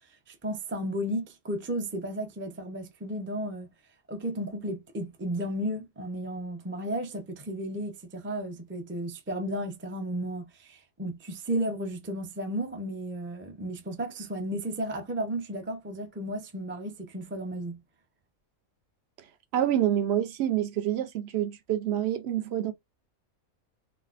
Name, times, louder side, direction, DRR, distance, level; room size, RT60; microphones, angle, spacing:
voice 1, 0.3-3.7 4.1-17.8, right 1 dB, 15° right, 0.5 m, -33 dB
voice 2, 19.5-22.7, right 11 dB, 60° right, 0.8 m, -27 dB
4.0 x 2.1 x 2.4 m
omnidirectional pair, 1.4 m